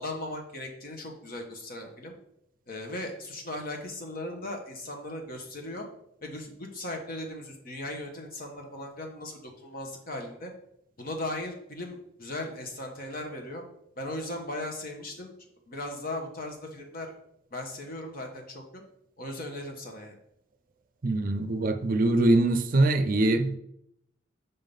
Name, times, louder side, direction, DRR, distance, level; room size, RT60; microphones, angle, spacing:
voice 1, 0.0-2.1 2.7-5.9 6.2-10.5 11.0-13.6 14.0-15.3 15.7-17.1 17.5-18.8 19.2-20.2, left 1 dB, 50° left, 2 dB, 1.2 m, -37 dB
voice 2, 21.0-23.6, right 2 dB, 50° right, 9 dB, 0.5 m, -23 dB
5.6 x 3.7 x 5.3 m, 0.74 s
head